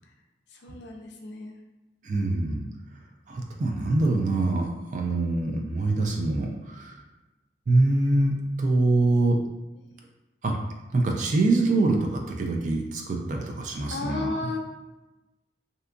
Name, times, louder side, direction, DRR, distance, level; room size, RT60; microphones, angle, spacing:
voice 1, 0.6-1.5 9.8-9.9 13.9-14.6, left 3 dB, 65° left, 2 dB, 0.4 m, -33 dB
voice 2, 2.0-2.7 3.3-6.9 7.7-9.4 10.4-10.6 10.9-14.3, right 2 dB, 40° right, 1 dB, 0.3 m, -24 dB
2.7 x 2.2 x 2.5 m, 1.1 s
head